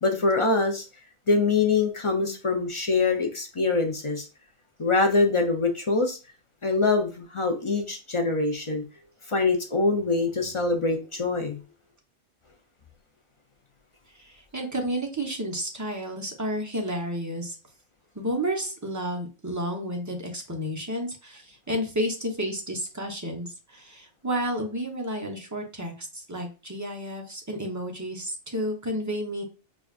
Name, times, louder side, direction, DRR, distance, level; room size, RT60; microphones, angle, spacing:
voice 1, 0.0-0.8 1.3-4.3 4.8-6.2 6.6-8.8 9.3-11.6, left 3 dB, 40° left, 3 dB, 0.4 m, -24 dB
voice 2, 14.1-17.6 18.1-29.4, equal, 20° right, 2 dB, 0.6 m, -31 dB
5.1 x 2.3 x 2.4 m, 0.32 s
omnidirectional pair, 1.2 m